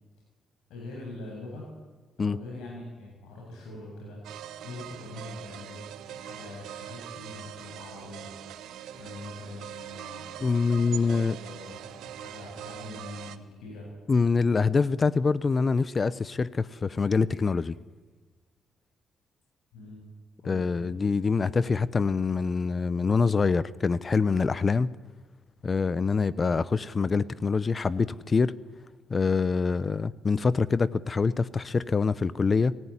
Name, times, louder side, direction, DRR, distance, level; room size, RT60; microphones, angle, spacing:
voice 1, 0.7-1.7 2.2-4.2 4.6-5.8 6.1-8.3 8.9-10.3 10.8-13.9 19.7-20.0 20.4-20.9, left 2 dB, 90° left, -2 dB, 7.2 m, -43 dB
sound 1, 4.2-13.4, right 11 dB, 85° right, 1.3 m, -42 dB
voice 2, 10.4-11.4 14.1-17.8 20.4-25.0 25.6-28.6 29.1-32.8, left 4 dB, 35° left, 18 dB, 0.7 m, -25 dB
29.0 x 15.5 x 9.9 m, 1.3 s
cardioid pair, 90°, 0 cm